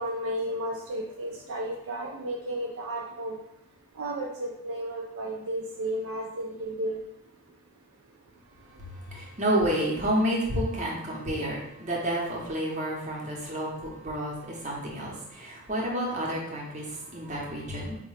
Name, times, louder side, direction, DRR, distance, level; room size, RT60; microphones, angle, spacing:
voice 1, 0.0-3.4 4.0-7.0, right 1 dB, 60° right, -1 dB, 0.4 m, -33 dB
voice 2, 8.7-18.0, right 1 dB, 30° right, -3 dB, 0.8 m, -30 dB
4.5 x 2.1 x 3.2 m, 0.82 s
head